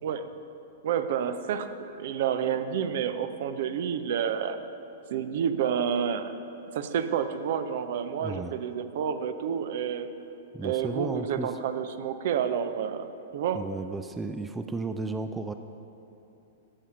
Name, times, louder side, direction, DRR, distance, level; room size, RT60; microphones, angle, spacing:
voice 1, 0.8-4.6 5.1-6.4 6.7-10.1 10.6-13.1 13.3-13.6, right 8 dB, 55° right, 10 dB, 0.7 m, -29 dB
voice 2, 8.2-8.6 10.5-11.5 13.5-15.5, right 3 dB, 10° right, 8 dB, 0.4 m, -34 dB
13.5 x 7.1 x 5.5 m, 3.0 s
figure-of-eight pair, 105°, 0 cm